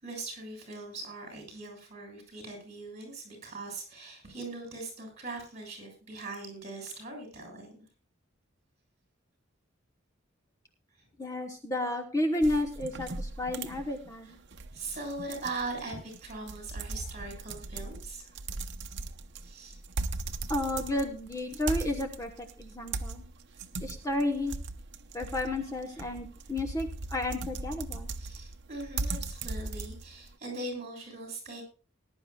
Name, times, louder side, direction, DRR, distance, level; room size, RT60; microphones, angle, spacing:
voice 1, 0.0-7.9 14.7-18.4 19.4-19.8 20.7-20.8 28.2-31.6, right 2 dB, 35° right, 2 dB, 7.2 m, -41 dB
voice 2, 11.2-14.4 20.5-23.2 23.8-24.6 25.1-28.1, left 1 dB, 15° left, 4 dB, 1.1 m, -32 dB
sound 1, 12.4-30.3, right 3 dB, 60° right, 0.8 m, -39 dB
20.0 x 11.0 x 2.4 m, 0.35 s
head